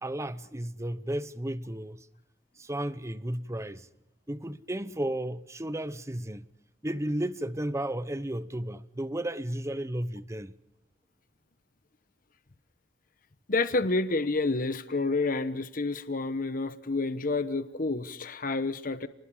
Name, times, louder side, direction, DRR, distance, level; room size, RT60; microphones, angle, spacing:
voice 1, 0.0-2.1 2.6-3.9 4.3-6.5 6.8-10.5, right 1 dB, 15° right, 0.8 m, -33 dB
voice 2, 13.5-19.1, left 3 dB, 50° left, 1.0 m, -29 dB
30.0 x 20.5 x 5.6 m
head